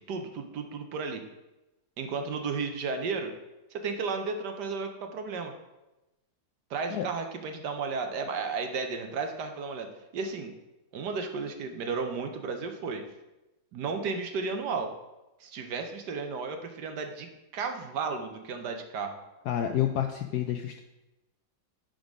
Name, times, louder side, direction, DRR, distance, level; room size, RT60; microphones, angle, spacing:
voice 1, 0.1-1.2 2.0-3.3 3.7-5.5 6.7-10.5 10.9-13.0 13.7-14.9 15.4-19.2, right 4 dB, 65° right, 5 dB, 1.2 m, -33 dB
voice 2, 19.5-20.8, left 10 dB, 75° left, 5 dB, 0.9 m, -29 dB
10.5 x 3.9 x 5.1 m, 1.0 s
omnidirectional pair, 2.1 m